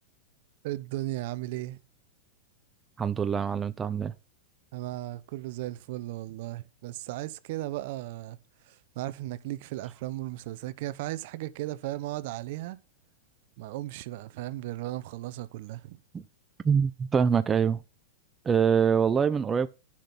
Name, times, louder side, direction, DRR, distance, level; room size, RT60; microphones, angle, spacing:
voice 1, 0.6-1.8 4.7-8.4 8.7-12.8 13.6-16.0, right 16 dB, 60° right, 0.7 m, -36 dB
voice 2, 3.0-4.1 16.1-16.2 16.6-17.8 18.5-19.7, right 7 dB, 20° right, 0.5 m, -24 dB
10.0 x 6.1 x 5.6 m
hypercardioid pair, 125°, 0 cm